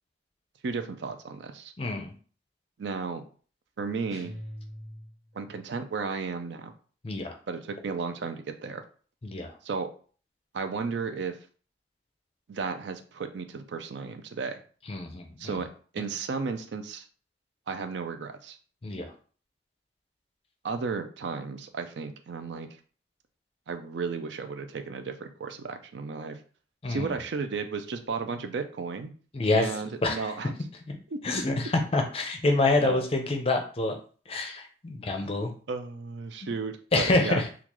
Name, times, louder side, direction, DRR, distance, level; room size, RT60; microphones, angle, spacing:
voice 1, 0.6-1.7 2.8-3.2 3.8-4.4 5.3-6.7 7.5-8.8 9.6-9.9 10.5-11.4 12.5-14.6 15.4-15.7 15.9-17.1 17.7-18.6 20.6-22.7 23.7-26.4 26.9-29.1 29.5-30.5 31.1-31.2 32.8-33.0 35.2-35.3 35.7-37.4, right 4 dB, 70° right, 8 dB, 0.4 m, -34 dB
voice 2, 1.8-2.1 7.0-7.4 9.2-9.5 14.9-15.6 18.8-19.1 26.8-27.2 29.3-30.3 30.9-31.0 31.2-34.0 34.3-35.5 36.4-36.5 36.9-37.5, left 2 dB, 30° left, 4 dB, 0.5 m, -27 dB
sound 1, 4.1-5.5, equal, 35° right, 1.5 m, -43 dB
3.7 x 2.3 x 3.0 m, 0.41 s
head